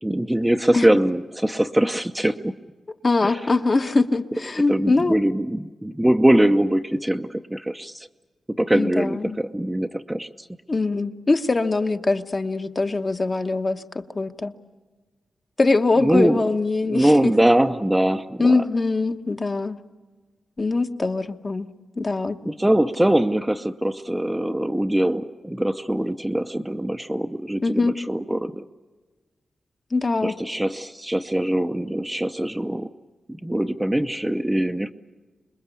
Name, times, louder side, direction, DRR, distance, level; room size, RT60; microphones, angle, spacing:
voice 1, 0.0-2.5 3.2-3.4 4.7-8.1 8.6-10.5 16.0-16.4 16.8-18.6 22.4-28.6 30.2-32.9 33.3-34.9, right 1 dB, 10° right, 7 dB, 0.7 m, -22 dB
voice 2, 3.0-5.2 8.7-9.4 10.7-14.5 15.6-17.3 18.4-19.8 20.6-21.7 22.0-22.4 27.6-28.0 29.9-30.4, left 3 dB, 30° left, 7 dB, 1.1 m, -22 dB
26.5 x 21.5 x 8.4 m, 1.3 s
wide cardioid pair, 100°, 0 cm